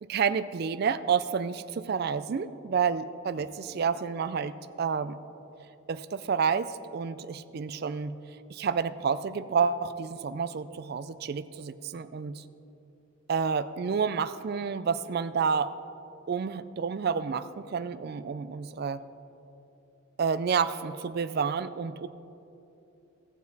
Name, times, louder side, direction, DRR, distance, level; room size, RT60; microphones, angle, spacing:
voice 1, 0.0-5.2 5.9-8.2 8.5-12.4 13.3-15.7 16.3-19.0 20.2-22.1, right 6 dB, 50° right, 14 dB, 0.3 m, -29 dB
16.5 x 7.3 x 4.0 m, 2.9 s
head